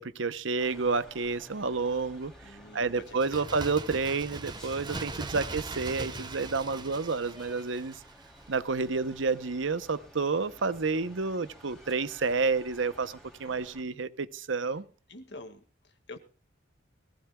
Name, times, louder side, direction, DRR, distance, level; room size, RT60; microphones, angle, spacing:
voice 1, 0.0-2.3 2.7-7.9 8.5-14.8, right 4 dB, 75° right, 14 dB, 0.8 m, -30 dB
sound 1, 0.6-13.8, equal, ahead, 3.1 m, -54 dB
voice 2, 2.4-3.5 13.4-14.0 15.1-16.2, left 2 dB, 60° left, 8 dB, 1.9 m, -49 dB
Bird, 3.0-8.6 8.9-9.0, right 3 dB, 25° right, 0.9 m, -40 dB
21.0 x 15.5 x 2.3 m, 0.36 s
head